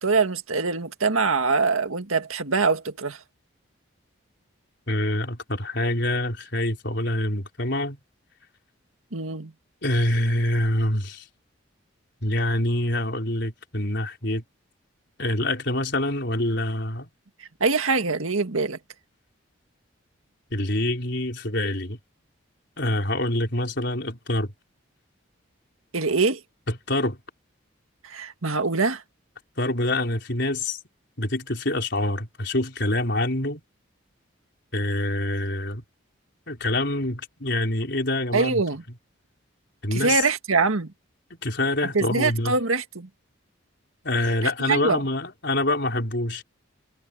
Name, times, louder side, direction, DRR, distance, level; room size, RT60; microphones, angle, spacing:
voice 1, 0.0-3.2 9.1-9.5 17.6-18.8 25.9-26.4 28.0-29.0 38.3-38.8 39.9-40.9 41.9-43.1 44.7-45.0, right 4 dB, 85° right, 1.9 m, -23 dB
voice 2, 4.9-8.0 9.8-11.2 12.2-14.4 15.2-17.1 20.5-22.0 22.8-24.5 26.9-27.2 29.6-30.8 31.2-33.6 34.7-35.8 36.5-38.6 39.8-40.2 41.3-42.6 44.0-46.4, left 1 dB, 55° left, 4.9 m, -26 dB
head